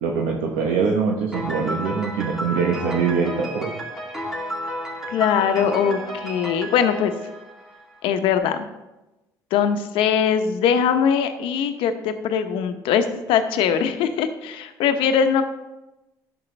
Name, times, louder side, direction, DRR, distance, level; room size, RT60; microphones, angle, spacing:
voice 1, 0.0-3.7, right 5 dB, 85° right, 0 dB, 1.0 m, -23 dB
Piano, 1.3-8.1, equal, 5° right, 2.9 m, -32 dB
voice 2, 5.1-7.1 8.0-8.6 9.5-15.4, left 7 dB, 80° left, 8 dB, 0.8 m, -21 dB
11.0 x 6.9 x 3.3 m, 1.0 s
supercardioid pair, 75°, 9 cm